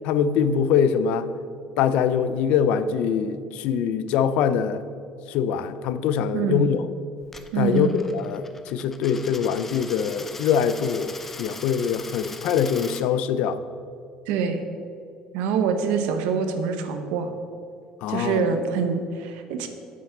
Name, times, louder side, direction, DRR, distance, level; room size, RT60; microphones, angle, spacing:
voice 1, 0.0-1.3 1.8-4.8 5.3-6.8 7.6-13.6 18.0-18.4, left 7 dB, 60° left, 13 dB, 0.5 m, -23 dB
voice 2, 6.3-6.7 7.5-8.0 14.3-14.6 15.3-17.3 18.1-19.7, right 6 dB, 80° right, 7 dB, 1.2 m, -25 dB
Coin (dropping), 7.2-13.0, left 3 dB, 15° left, 0.6 m, -40 dB
9.3 x 6.2 x 7.2 m, 2.3 s
cardioid pair, 170°, 2 cm